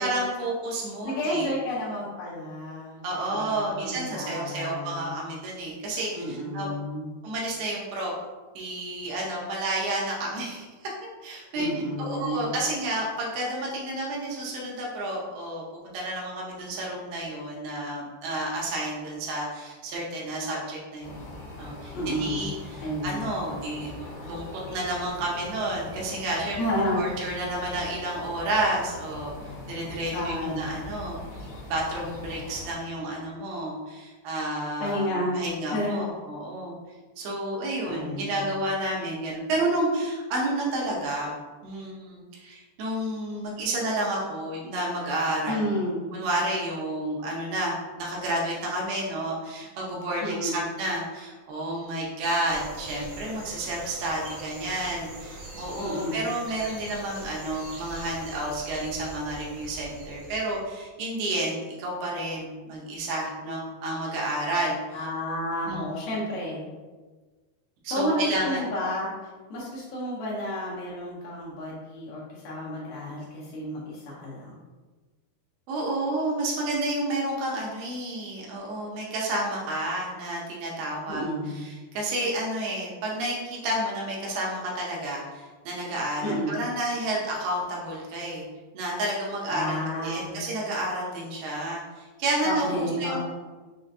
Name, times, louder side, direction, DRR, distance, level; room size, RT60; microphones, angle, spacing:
voice 1, 0.0-1.5 3.0-6.7 7.2-8.1 8.6-10.9 11.2-11.7 12.0-15.6 15.9-21.3 21.6-23.9 24.2-26.6 26.9-29.3 29.7-31.2 31.7-36.8 37.2-41.3 41.6-45.7 46.1-65.1 65.7-65.9 67.8-68.6 75.7-81.3 81.5-88.4 88.7-93.2, right 1 dB, 80° right, -3 dB, 2.6 m, -30 dB
voice 2, 1.0-5.1 6.1-7.1 11.6-12.6 21.9-22.5 22.8-23.3 26.6-27.1 30.1-30.7 34.8-35.5 35.7-36.1 37.8-38.5 45.5-46.1 50.2-50.7 55.8-56.2 64.9-66.7 67.9-69.1 69.5-74.5 81.1-81.7 86.2-86.6 89.5-90.3 92.4-93.2, equal, 75° left, -6 dB, 2.5 m, -31 dB
sound 1, 21.0-32.7, left 2 dB, 60° left, 2.2 m, -42 dB
sound 2, 52.5-60.6, right 1 dB, 65° right, 1.2 m, -42 dB
6.4 x 2.2 x 2.5 m, 1.3 s
omnidirectional pair, 4.8 m